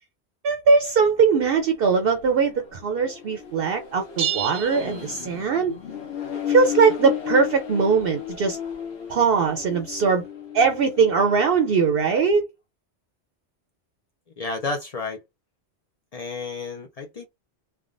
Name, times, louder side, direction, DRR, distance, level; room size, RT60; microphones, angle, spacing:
voice 1, 0.4-5.7 6.5-8.6 9.1-10.2 10.5-12.5, right 5 dB, 65° right, 0.7 m, -20 dB
Accelerating revving vroom, 1.2-11.7, left 9 dB, 70° left, 1.1 m, -34 dB
sound 1, 4.2-5.8, right 10 dB, 85° right, 1.0 m, -30 dB
voice 2, 14.4-15.2 16.1-17.3, left 3 dB, 55° left, 0.4 m, -31 dB
3.3 x 2.1 x 2.5 m
omnidirectional pair, 1.2 m